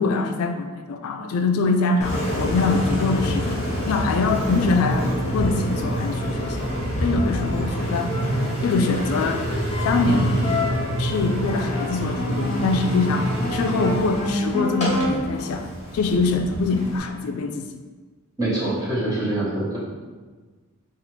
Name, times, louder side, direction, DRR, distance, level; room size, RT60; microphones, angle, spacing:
voice 1, 0.0-3.6 3.9-6.7 7.0-8.1 8.6-9.4 9.8-10.7 11.0-15.7 15.9-17.7, left 3 dB, 75° left, 6 dB, 0.3 m, -23 dB
Engine, 2.0-17.0, equal, 30° left, 0.9 m, -26 dB
voice 2, 18.4-19.8, right 1 dB, 15° right, -7 dB, 0.8 m, -24 dB
4.1 x 2.4 x 3.0 m, 1.4 s
head